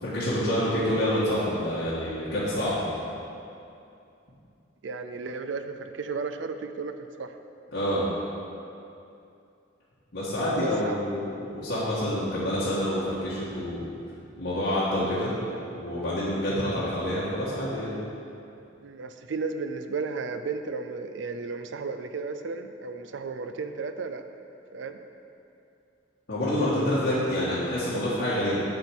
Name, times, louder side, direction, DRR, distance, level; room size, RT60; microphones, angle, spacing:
voice 1, 0.0-2.8 7.7-8.0 10.1-13.8 14.4-15.3 15.7-17.9 26.3-28.6, left 1 dB, 80° left, -11 dB, 1.6 m, -27 dB
voice 2, 4.8-6.9 7.2-7.3 10.6-11.0 18.8-24.2 24.7-25.0, right 4 dB, 75° right, 8 dB, 0.5 m, -34 dB
7.8 x 4.4 x 7.0 m, 2.6 s
head